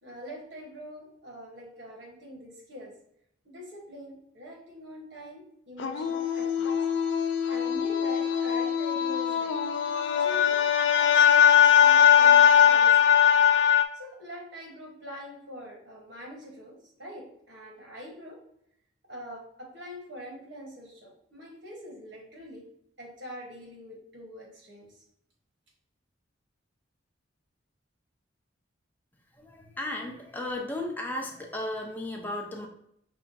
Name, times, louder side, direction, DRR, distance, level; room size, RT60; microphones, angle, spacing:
voice 1, 0.0-2.9 3.4-7.0 7.5-9.6 10.2-10.6 10.9-11.5 11.8-13.4 13.9-18.4 19.1-22.6 23.0-25.0, equal, 65° right, 0 dB, 1.3 m, -44 dB
sound 1, 5.8-13.8, left 8 dB, 65° left, 0.4 m, -21 dB
voice 2, 29.3-32.7, left 1 dB, 10° left, 1 dB, 0.6 m, -35 dB
5.8 x 2.1 x 4.0 m, 0.72 s
head